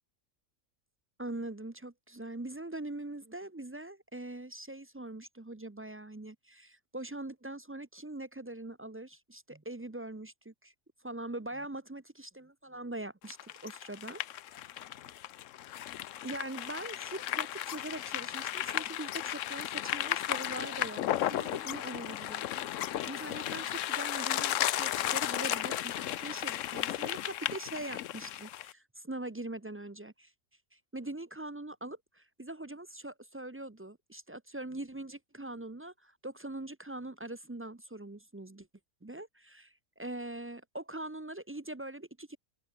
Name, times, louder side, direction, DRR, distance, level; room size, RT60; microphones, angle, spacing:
voice 1, 1.2-10.7 11.0-14.2 14.6-14.8 16.2-22.7 23.1-30.3 30.7-38.7 39.0-42.4, right 2 dB, 15° right, 0.4 m, -42 dB
sound 1, 13.3-28.7, left 12 dB, 75° left, 1.0 m, -34 dB
omnidirectional pair, 1.4 m